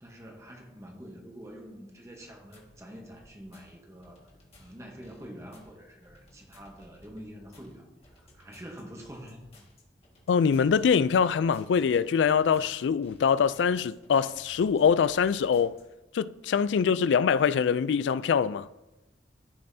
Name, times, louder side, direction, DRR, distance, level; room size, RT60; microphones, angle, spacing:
voice 1, 0.0-4.3 4.6-9.4, equal, 15° right, 1.0 m, -46 dB
sound 1, 2.3-15.8, left 1 dB, 35° left, 1.6 m, -58 dB
voice 2, 10.3-15.8 16.1-18.7, left 6 dB, 85° left, 0.3 m, -24 dB
14.0 x 5.4 x 2.7 m
head